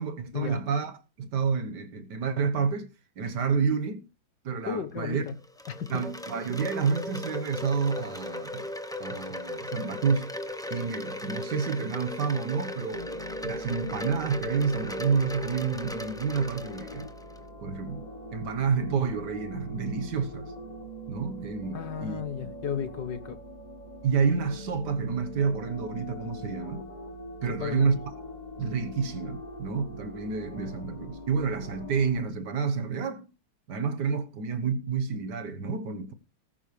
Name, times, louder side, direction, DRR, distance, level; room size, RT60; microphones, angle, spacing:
voice 1, 0.0-4.1 4.4-5.2 5.9-8.7 9.0-10.3 10.7-13.1 13.4-17.1 17.6-18.0 18.3-20.5 21.1-22.2 24.0-26.9 27.4-28.0 28.6-33.3 33.7-36.1, right 5 dB, 60° right, 1.7 m, -29 dB
voice 2, 4.7-5.3 5.7-6.0 21.7-23.4 27.5-27.9, left 7 dB, 65° left, 1.8 m, -34 dB
Wind chime, 5.1-17.4, left 1 dB, 5° left, 0.4 m, -37 dB
sound 1, 12.9-32.2, equal, 25° left, 1.3 m, -43 dB
19.0 x 9.9 x 3.2 m
omnidirectional pair, 2.1 m